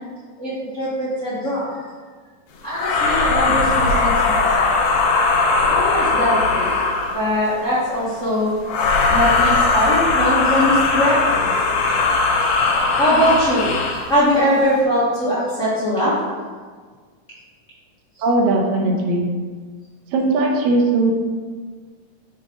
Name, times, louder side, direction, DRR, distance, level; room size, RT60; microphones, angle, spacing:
voice 1, 0.4-1.7 2.6-4.7 5.7-6.7 7.1-8.5 9.1-11.5 13.0-13.7 14.1-16.2, equal, 35° left, -10 dB, 1.3 m, -21 dB
sound 1, 2.7-7.3 8.7-14.1, left 3 dB, 80° left, 2.5 m, -19 dB
voice 2, 18.2-19.3 20.1-21.1, right 2 dB, 80° right, 0 dB, 2.6 m, -18 dB
7.3 x 5.5 x 3.9 m, 1.5 s
omnidirectional pair, 3.9 m